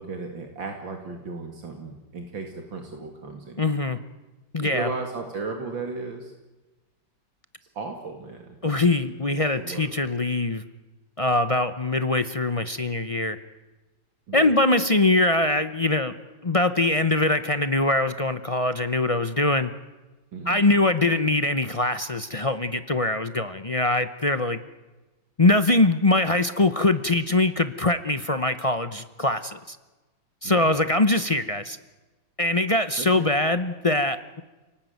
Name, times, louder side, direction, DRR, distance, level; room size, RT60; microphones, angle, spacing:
voice 1, 0.0-3.6 4.6-6.3 7.7-8.6 9.6-9.9 14.3-14.5 20.3-20.6 30.4-30.7 33.0-33.3, right 4 dB, 75° right, 3 dB, 2.9 m, -35 dB
voice 2, 3.6-4.0 4.5-4.9 8.6-10.6 11.2-13.4 14.3-16.1 16.4-19.7 20.4-24.6 25.4-29.8 30.4-31.8 32.4-34.4, left 2 dB, 35° left, 10 dB, 0.5 m, -22 dB
29.0 x 19.0 x 9.3 m, 1.2 s
omnidirectional pair, 2.1 m